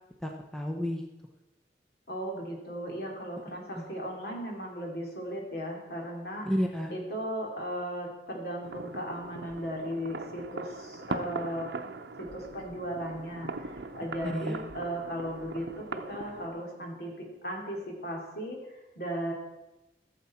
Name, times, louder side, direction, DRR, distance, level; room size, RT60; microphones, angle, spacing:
voice 1, 0.2-1.0 3.8-3.9 6.5-6.9 14.3-14.6, equal, 5° left, 2 dB, 0.8 m, -31 dB
voice 2, 2.1-6.5 6.9-11.7 12.2-19.3, equal, 60° left, 0 dB, 2.7 m, -36 dB
sound 1, 8.6-16.5, right 3 dB, 80° right, 0.7 m, -40 dB
15.5 x 7.3 x 4.3 m, 1.0 s
head